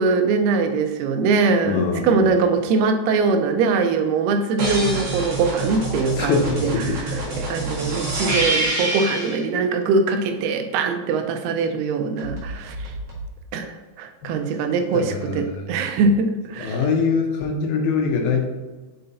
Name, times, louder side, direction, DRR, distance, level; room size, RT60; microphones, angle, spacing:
voice 1, 0.0-7.0 7.4-12.9 13.5-16.8, right 4 dB, 85° right, 6 dB, 2.5 m, -22 dB
voice 2, 1.6-2.3 6.2-7.0 14.2-14.3 14.9-15.7 16.6-18.4, left 5 dB, 75° left, 2 dB, 2.4 m, -23 dB
sound 1, 4.6-9.4 12.2-13.3, right 2 dB, 50° right, 2.1 m, -26 dB
5.5 x 5.4 x 4.0 m, 1.2 s
omnidirectional pair, 4.6 m